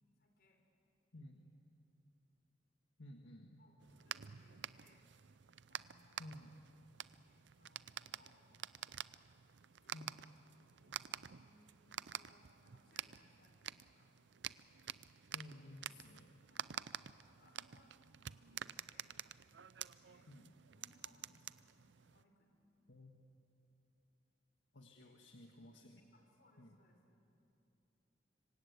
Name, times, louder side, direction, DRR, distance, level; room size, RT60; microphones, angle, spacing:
voice 1, 0.2-0.6 3.6-5.0 5.7-6.3 7.3-8.4 9.8-10.0 10.8-14.1 16.5-16.7 17.3-19.2 20.0-20.3 20.7-21.6 22.0-22.6 24.8-25.1 26.1-27.2, left 1 dB, 55° left, 2 dB, 4.7 m, -70 dB
voice 2, 1.1-1.5 3.0-3.6 6.2-6.5 9.9-10.2 15.3-16.4 20.3-20.5 22.9-23.1 24.7-26.0 26.6-26.8, left 1 dB, 80° left, 2 dB, 1.7 m, -55 dB
sound 1, 3.8-22.2, right 9 dB, 70° right, 0.5 m, -49 dB
26.0 x 25.5 x 8.3 m, 2.9 s
head